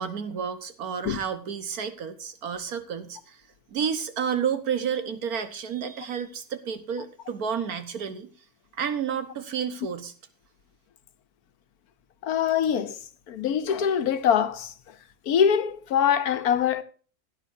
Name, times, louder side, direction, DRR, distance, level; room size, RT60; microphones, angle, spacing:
voice 1, 0.0-3.4 3.7-8.3 8.8-10.1, right 7 dB, 75° right, 1.7 m, -30 dB
voice 2, 12.2-13.0 13.3-14.9 15.3-16.8, left 8 dB, 85° left, 1.4 m, -23 dB
16.5 x 9.7 x 2.7 m
omnidirectional pair, 1.6 m